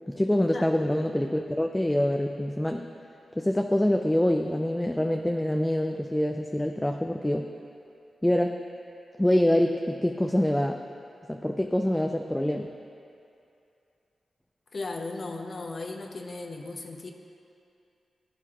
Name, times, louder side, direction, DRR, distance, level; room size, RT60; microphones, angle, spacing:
voice 1, 0.1-2.8 3.4-7.5 8.2-8.6 9.2-10.8 11.3-12.7, left 1 dB, 10° left, 3 dB, 0.5 m, -25 dB
voice 2, 14.7-17.1, left 3 dB, 50° left, 3 dB, 0.9 m, -36 dB
15.5 x 9.0 x 2.9 m, 2.6 s
cardioid pair, 70°, 0 cm